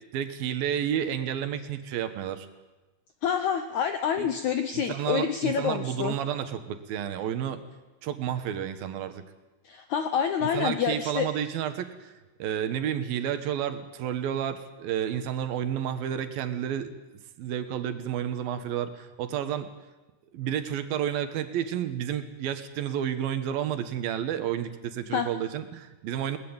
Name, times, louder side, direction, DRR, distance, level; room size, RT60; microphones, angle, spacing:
voice 1, 0.1-2.5 4.2-4.3 4.7-7.6 8.0-9.2 10.4-12.1 12.4-19.7 20.3-26.4, right 9 dB, 70° right, 10 dB, 3.0 m, -31 dB
voice 2, 3.2-6.2 9.7-11.3 25.1-25.3, left 8 dB, 75° left, 9 dB, 1.7 m, -27 dB
21.0 x 19.0 x 8.9 m, 1.1 s
omnidirectional pair, 4.5 m